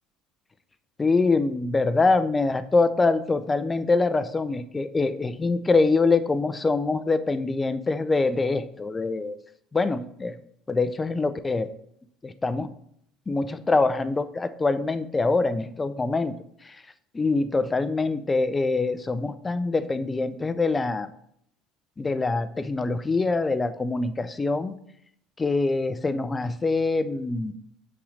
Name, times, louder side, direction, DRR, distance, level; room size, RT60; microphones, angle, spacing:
voice 1, 1.0-9.4 9.7-10.3 10.7-11.7 12.2-12.7 13.3-16.3 16.6-16.8 17.1-21.1 22.0-24.8 25.4-27.5, left 3 dB, 20° left, 12 dB, 0.6 m, -24 dB
7.3 x 5.6 x 4.0 m, 0.71 s
figure-of-eight pair, 60°, 0 cm